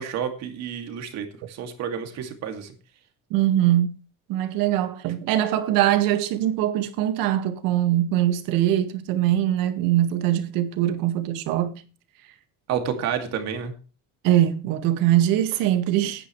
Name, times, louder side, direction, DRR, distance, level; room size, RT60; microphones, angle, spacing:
voice 1, 0.0-2.7 12.7-13.7, right 8 dB, 50° right, 2.6 m, -30 dB
voice 2, 3.3-4.0 4.3-11.8 14.2-16.3, right 12 dB, 70° right, 1.9 m, -22 dB
17.5 x 10.0 x 3.3 m
cardioid pair, 165°, 35 cm